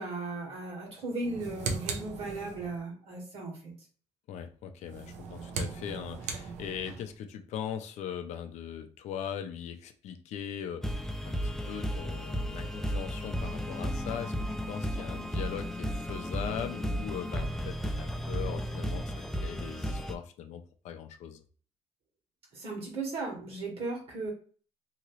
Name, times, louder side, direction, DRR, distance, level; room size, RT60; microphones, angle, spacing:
voice 1, 0.0-3.7 22.5-24.3, right 3 dB, 50° right, 0 dB, 1.4 m, -36 dB
sound 1, 1.2-2.8 4.8-7.1, right 4 dB, 75° right, 0.6 m, -38 dB
voice 2, 4.3-21.4, left 8 dB, 70° left, 7 dB, 0.5 m, -40 dB
sound 2, 10.8-20.1, equal, 5° left, 0.3 m, -34 dB
2.8 x 2.8 x 3.0 m, 0.41 s
cardioid pair, 140°, 12 cm